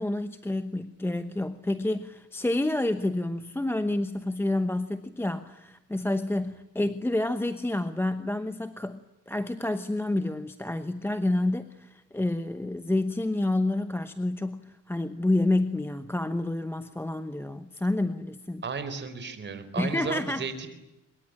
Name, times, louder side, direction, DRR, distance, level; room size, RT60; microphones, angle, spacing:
voice 1, 0.0-9.0 9.3-18.6 19.8-20.4, left 2 dB, 5° left, 10 dB, 1.0 m, -29 dB
voice 2, 18.6-20.7, right 5 dB, 35° right, 10 dB, 4.3 m, -34 dB
25.0 x 22.0 x 9.9 m, 0.94 s
cardioid pair, 150°, 31 cm